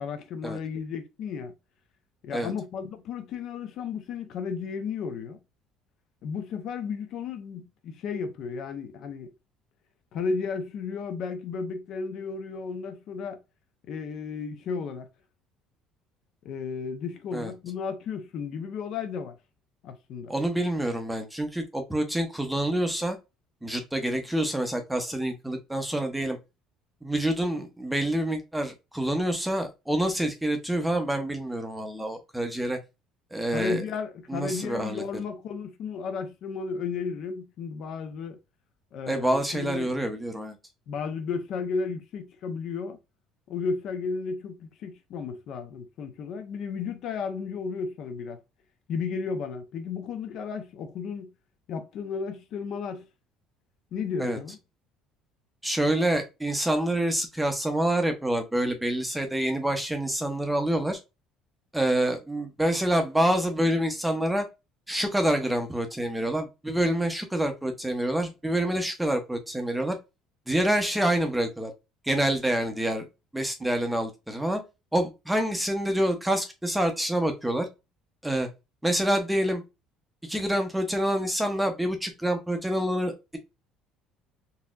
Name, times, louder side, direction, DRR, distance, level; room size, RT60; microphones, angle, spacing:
voice 1, 0.0-1.5 2.2-5.4 6.2-9.3 10.1-13.4 13.9-15.1 16.4-19.4 19.8-20.3 33.5-38.4 38.9-39.9 40.9-43.0 43.5-48.4 48.9-51.3 51.7-53.1 53.9-54.6, left 5 dB, 50° left, 0.6 m, -33 dB
voice 2, 20.3-23.2 23.6-26.4 27.0-32.8 33.3-33.8 34.3-35.0 39.1-40.6 54.2-54.4 55.6-61.0 61.7-64.5 64.9-70.0 70.5-71.7 72.0-73.1 73.3-74.6 74.9-77.7 78.2-78.5 78.8-79.6 80.3-83.4, right 1 dB, 5° right, 0.6 m, -27 dB
4.0 x 2.7 x 2.4 m
cardioid pair, 155°, 0 cm